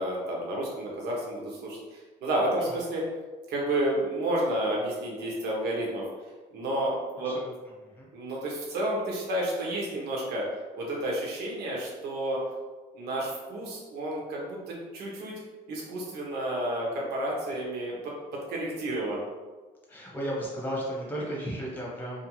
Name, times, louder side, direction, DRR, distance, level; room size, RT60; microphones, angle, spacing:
voice 1, 0.0-3.1 3.5-6.1 6.5-7.3 8.1-10.5 10.8-12.4 12.9-15.3 15.7-19.2, right 1 dB, 70° right, -3 dB, 0.8 m, -31 dB
voice 2, 19.9-22.3, equal, 10° left, -4 dB, 0.9 m, -34 dB
2.4 x 2.4 x 2.9 m, 1.3 s
cardioid pair, 110°, 17 cm